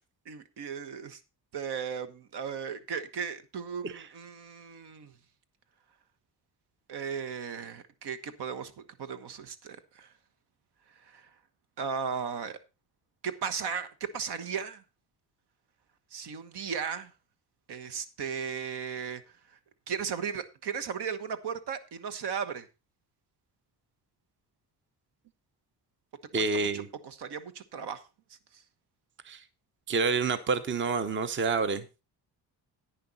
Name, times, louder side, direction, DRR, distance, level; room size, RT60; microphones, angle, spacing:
voice 1, 0.3-1.2 1.5-5.1 6.9-8.7 9.0-10.1 11.1-11.2 11.8-12.6 13.2-14.8 16.1-17.1 17.7-19.2 19.9-22.7 26.4-26.5 26.7-28.0, right 6 dB, 70° right, 11 dB, 1.3 m, -36 dB
voice 2, 26.3-26.9 29.3-29.4 29.9-31.8, right 4 dB, 30° right, 13 dB, 0.7 m, -28 dB
10.5 x 9.7 x 4.1 m, 0.28 s
cardioid pair, 150°, 41 cm